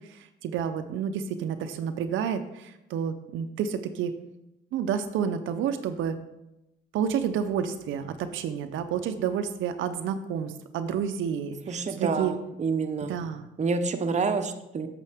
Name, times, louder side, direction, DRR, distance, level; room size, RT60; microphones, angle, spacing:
voice 1, 0.1-4.1 4.7-6.2 6.9-11.6 12.0-12.3 13.0-13.5, right 8 dB, 85° right, 8 dB, 0.6 m, -30 dB
voice 2, 11.7-13.2 13.6-14.9, right 4 dB, 35° right, 7 dB, 0.8 m, -28 dB
8.4 x 6.8 x 3.5 m, 0.90 s
cardioid pair, 90°, 20 cm